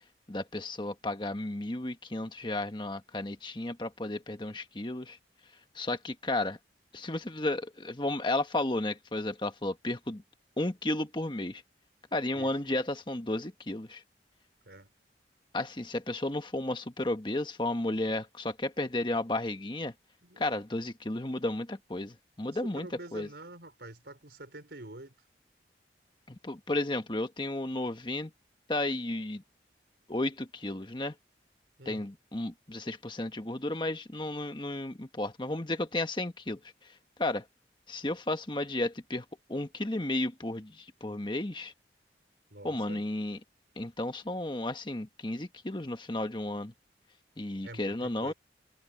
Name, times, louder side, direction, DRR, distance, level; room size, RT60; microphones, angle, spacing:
voice 1, 0.3-5.2 5.7-6.6 6.9-10.2 10.6-11.6 12.1-14.0 15.5-19.9 20.4-23.3 26.3-28.3 28.7-29.4 30.1-31.1 31.8-36.6 37.2-37.4 37.9-41.7 42.6-43.4 43.8-46.7 47.4-48.3, left 2 dB, 25° left, 1.3 m, -33 dB
voice 2, 22.4-25.1 31.8-32.0 42.5-43.0 47.6-48.3, right 1 dB, 70° right, 4.2 m, -46 dB
head